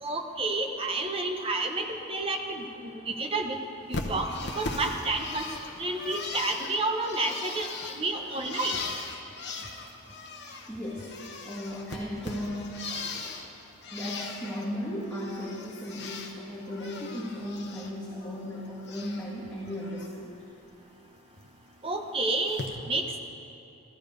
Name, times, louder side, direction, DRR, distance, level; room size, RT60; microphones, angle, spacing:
voice 1, 0.0-3.6 3.9-4.3 4.6-5.4 5.8-8.8 21.8-23.2, right 2 dB, 25° right, 3 dB, 1.0 m, -30 dB
Bird, 3.9-10.7 11.0-13.5 13.8-14.7 15.0-16.3 16.7-17.9 18.2-19.3 19.7-20.1 21.4-21.5 22.5-22.7, left 3 dB, 50° left, 1.1 m, -39 dB
voice 2, 10.7-11.2 11.4-13.6 13.9-20.3, equal, 5° left, -9 dB, 1.9 m, -36 dB
14.5 x 14.5 x 5.2 m, 3.0 s
head